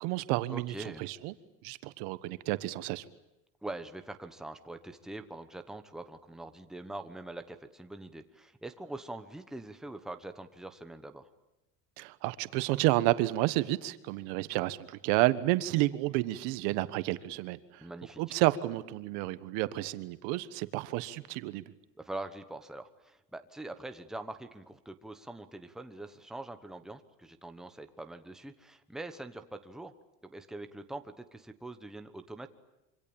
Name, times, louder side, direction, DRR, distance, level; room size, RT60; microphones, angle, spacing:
voice 1, 0.0-0.7 1.0-1.3 1.6-3.0 12.0-17.8 18.2-21.6, right 18 dB, 85° right, 1.4 m, -30 dB
voice 2, 0.5-1.0 3.6-11.3 17.8-18.4 22.0-29.9 30.2-32.5, right 2 dB, ahead, 1.1 m, -43 dB
26.0 x 25.5 x 8.8 m
cardioid pair, 170°, 36 cm